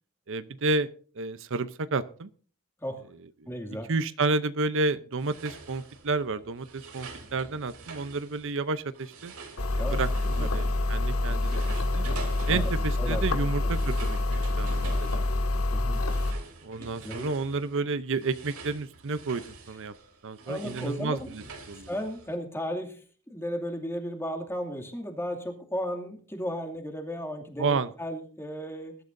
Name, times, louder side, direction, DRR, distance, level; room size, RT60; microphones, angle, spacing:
voice 1, 0.3-0.9 1.1-2.3 3.4-3.5 3.9-9.3 9.7-10.1 10.4-12.1 12.5-15.2 16.6-19.9 20.2-21.9 27.6-27.9, right 3 dB, 60° right, 13 dB, 0.7 m, -31 dB
voice 2, 3.5-3.9 9.8-10.0 10.4-10.5 12.5-12.7 13.0-13.2 15.7-16.0 17.0-17.3 20.5-21.3 21.9-29.0, equal, 10° left, 4 dB, 2.4 m, -35 dB
sound 1, 5.2-11.0 11.2-22.3, right 3 dB, 80° right, 3.2 m, -46 dB
sound 2, 9.6-16.3, left 2 dB, 85° left, 2.0 m, -27 dB
21.0 x 12.0 x 2.6 m, 0.41 s
head